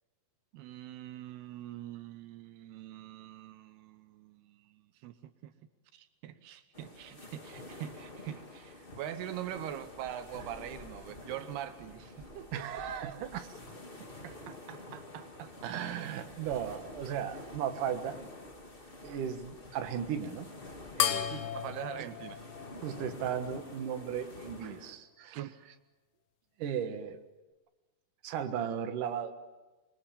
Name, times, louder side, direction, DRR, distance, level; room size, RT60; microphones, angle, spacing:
voice 1, 0.5-5.5 5.9-12.7 14.0-15.6 21.3-22.4 25.3-25.5, right 11 dB, 80° right, 3.0 m, -43 dB
sound 1, 6.7-24.9, left 2 dB, 20° left, 1.6 m, -49 dB
voice 2, 12.5-13.5 15.6-18.2 19.0-20.5 21.0-21.3 22.0-22.1 22.8-25.4 26.6-27.2 28.2-29.3, right 8 dB, 60° right, 2.8 m, -36 dB
sound 2, 21.0-23.8, left 10 dB, 65° left, 2.0 m, -35 dB
27.0 x 23.5 x 7.3 m
omnidirectional pair, 4.6 m